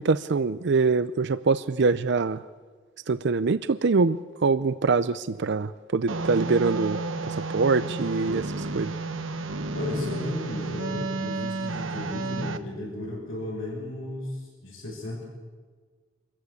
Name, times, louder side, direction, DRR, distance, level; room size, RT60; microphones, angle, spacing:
voice 1, 0.0-2.4 3.1-8.9, right 4 dB, 60° right, 14 dB, 0.5 m, -24 dB
sound 1, 6.1-12.6, right 3 dB, 90° right, 1.2 m, -31 dB
voice 2, 9.7-15.2, left 1 dB, 90° left, -6 dB, 6.0 m, -34 dB
26.0 x 15.0 x 8.4 m, 1.5 s
head